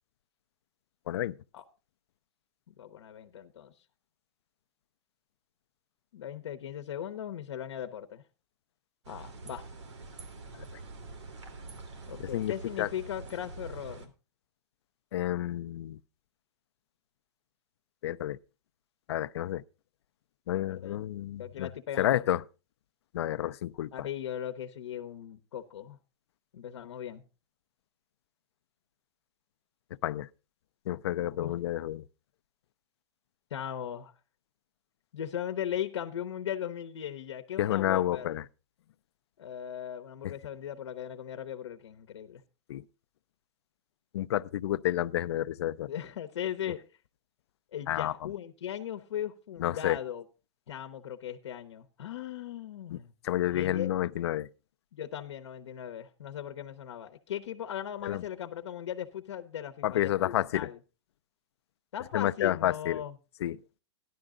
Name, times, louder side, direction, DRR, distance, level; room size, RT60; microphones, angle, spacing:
voice 1, 1.1-1.4 12.2-12.9 15.1-16.0 18.0-18.4 19.1-19.6 20.5-21.7 22.0-22.4 23.1-24.1 30.0-30.3 30.9-32.0 37.6-38.4 40.2-40.3 42.7-42.8 44.1-45.9 47.9-48.3 49.6-50.0 52.9-54.5 58.0-58.2 59.8-60.7 62.1-63.0 63.4-63.6, left 13 dB, 70° left, 0.5 m, -30 dB
voice 2, 2.8-3.7 6.1-8.2 9.1-9.6 12.1-14.1 20.7-21.0 21.4-22.2 23.9-26.0 26.5-27.2 31.4-31.6 33.5-34.1 35.1-38.3 39.4-42.4 45.8-46.8 47.7-50.2 50.7-53.1 53.4-53.9 54.9-60.8 61.9-63.1, left 10 dB, 85° left, 0.9 m, -38 dB
sound 1, 9.0-14.1, right 3 dB, 85° right, 2.6 m, -45 dB
13.5 x 11.0 x 3.7 m
hypercardioid pair, 150°, 14 cm